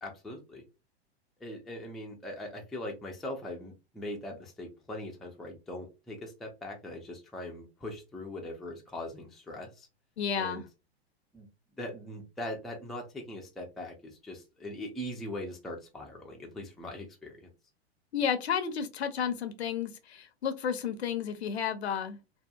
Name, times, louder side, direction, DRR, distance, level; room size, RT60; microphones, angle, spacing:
voice 1, 0.0-0.6 1.4-9.9 10.4-10.6 11.3-11.5 11.8-17.5, left 1 dB, ahead, 0.3 m, -41 dB
voice 2, 10.2-10.6 18.1-22.2, left 7 dB, 75° left, 0.6 m, -32 dB
2.7 x 2.2 x 2.2 m
figure-of-eight pair, 100°, 33 cm